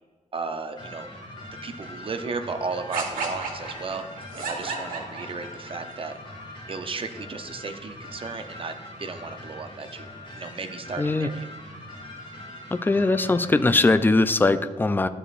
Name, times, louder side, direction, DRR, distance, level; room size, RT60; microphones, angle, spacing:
voice 1, 0.3-1.1 1.6-4.1 4.3-6.2 6.7-8.7 9.0-10.1 10.3-11.6, right 4 dB, 40° right, 7 dB, 0.6 m, -34 dB
sound 1, 0.8-14.0, left 1 dB, 35° left, 1.7 m, -42 dB
sound 2, 2.9-5.7, right 4 dB, 90° right, 1.2 m, -32 dB
voice 2, 11.0-11.3 12.7-15.1, left 2 dB, 15° left, 11 dB, 0.3 m, -21 dB
12.5 x 5.0 x 2.5 m, 1.4 s
cardioid pair, 100°, 14 cm